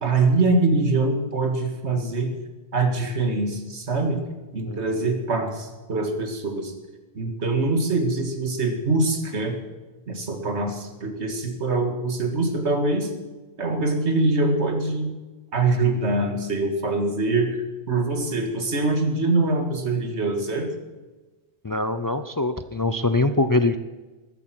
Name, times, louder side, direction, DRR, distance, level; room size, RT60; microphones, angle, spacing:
voice 1, 0.0-2.3 2.7-4.2 4.5-6.7 7.1-9.5 10.1-13.1 13.6-15.1 15.5-20.7, right 3 dB, 90° right, 5 dB, 2.2 m, -24 dB
voice 2, 21.6-23.8, left 2 dB, 35° left, 11 dB, 0.3 m, -23 dB
14.0 x 12.0 x 6.0 m, 1.2 s
omnidirectional pair, 1.1 m